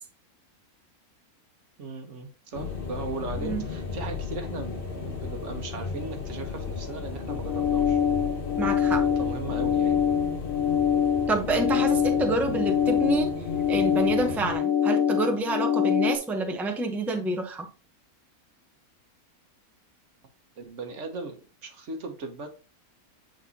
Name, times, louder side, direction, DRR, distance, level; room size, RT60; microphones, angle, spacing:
voice 1, 1.8-8.0 8.8-10.0 20.6-22.5, right 3 dB, 55° right, 5 dB, 1.4 m, -38 dB
sound 1, 2.5-14.6, left 5 dB, 40° left, 1.2 m, -35 dB
sound 2, 7.3-16.2, left 8 dB, 70° left, 1.2 m, -25 dB
voice 2, 8.6-9.0 11.3-13.3 13.7-17.7, right 2 dB, ahead, 4 dB, 0.6 m, -28 dB
9.0 x 3.8 x 2.8 m, 0.33 s
omnidirectional pair, 1.6 m